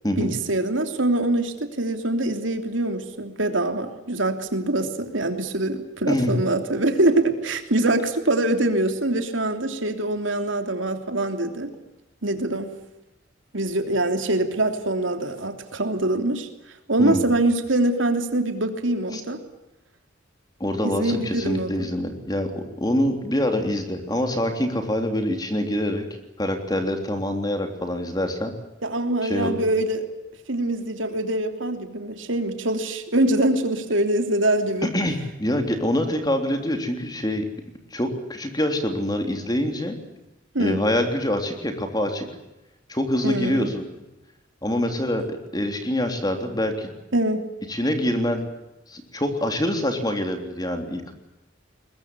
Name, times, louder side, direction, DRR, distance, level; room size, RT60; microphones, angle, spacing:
voice 1, 0.2-11.7 12.2-12.7 13.5-16.5 16.9-19.4 20.8-21.7 28.8-30.1 30.5-34.9 40.5-40.8 43.2-43.7 47.1-47.5, right 1 dB, 85° right, 6 dB, 3.1 m, -24 dB
voice 2, 20.6-26.1 26.4-28.5 29.2-29.6 34.8-37.5 37.9-40.0 40.6-42.3 42.9-43.8 44.6-46.9 47.7-48.4 48.9-51.1, left 1 dB, 20° left, 5 dB, 3.4 m, -25 dB
22.0 x 21.0 x 9.8 m, 0.95 s
head